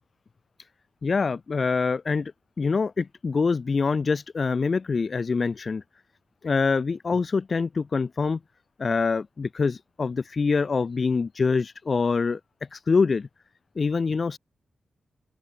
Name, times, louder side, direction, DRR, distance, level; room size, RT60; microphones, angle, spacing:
voice 1, 1.0-2.3 2.6-5.8 6.4-8.4 8.8-12.4 12.7-13.3 13.8-14.4, left 4 dB, 45° left, 0.6 m, -25 dB
open air
cardioid pair, 65°, 0 cm